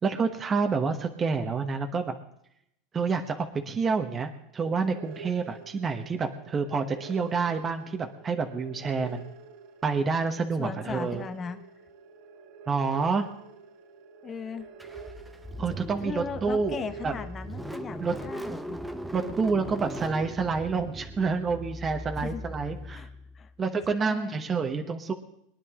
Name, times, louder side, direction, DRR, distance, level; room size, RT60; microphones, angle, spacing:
voice 1, 0.0-2.1 2.9-9.3 9.8-11.2 12.7-13.3 15.6-17.2 18.0-18.1 19.1-23.1 23.6-25.1, right 4 dB, 25° right, 5 dB, 1.2 m, -28 dB
sound 1, 4.8-18.4, right 5 dB, 65° right, 1.4 m, -48 dB
voice 2, 10.6-11.7 14.2-14.9 16.0-18.8 22.2-22.4 22.9-23.1 23.3-23.5 24.0-24.4, left 6 dB, 25° left, 9 dB, 1.0 m, -37 dB
Car / Engine starting, 14.8-23.6, equal, 5° right, 0.9 m, -39 dB
22.0 x 10.5 x 3.8 m, 0.75 s
supercardioid pair, 125°, 0 cm